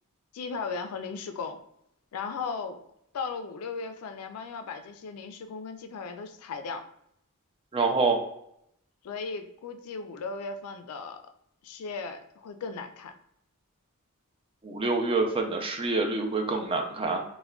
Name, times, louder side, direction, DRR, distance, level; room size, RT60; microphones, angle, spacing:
voice 1, 0.3-1.6 2.1-2.9 3.1-6.8 9.0-11.2 11.6-13.1, left 4 dB, 75° left, 7 dB, 0.4 m, -36 dB
voice 2, 7.7-8.2 14.6-17.2, right 3 dB, 25° right, 3 dB, 0.4 m, -26 dB
3.5 x 2.2 x 2.2 m, 0.74 s
head